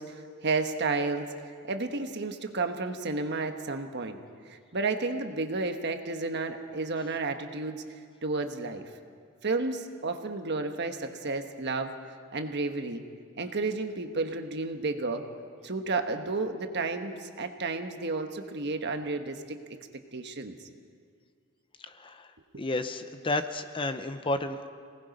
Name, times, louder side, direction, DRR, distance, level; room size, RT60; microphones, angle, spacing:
voice 1, 0.0-1.3 1.6-4.2 4.5-7.8 8.2-8.9 9.4-12.0 12.3-13.0 13.4-15.3 15.6-19.6 20.1-20.6 22.5-22.6, right 3 dB, 50° right, 6 dB, 1.3 m, -32 dB
voice 2, 22.0-22.3 22.6-24.7, left 2 dB, 25° left, 9 dB, 0.7 m, -31 dB
27.0 x 19.0 x 5.3 m, 2.1 s
head